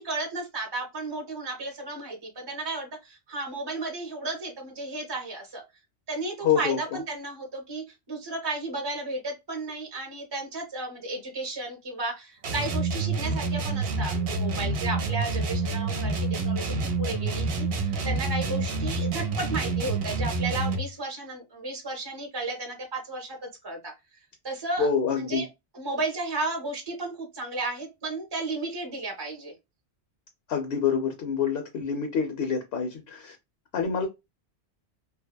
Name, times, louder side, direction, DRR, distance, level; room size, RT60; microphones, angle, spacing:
voice 1, 0.0-5.6 6.1-16.7 17.0-23.9 24.4-25.5 25.7-29.5, right 2 dB, 30° right, 0.5 m, -33 dB
voice 2, 6.4-6.8 24.8-25.4 30.5-33.4 33.7-34.1, left 6 dB, 70° left, 0.7 m, -26 dB
sound 1, 12.4-20.9, right 3 dB, 65° right, 0.7 m, -28 dB
2.7 x 2.1 x 2.2 m
omnidirectional pair, 1.1 m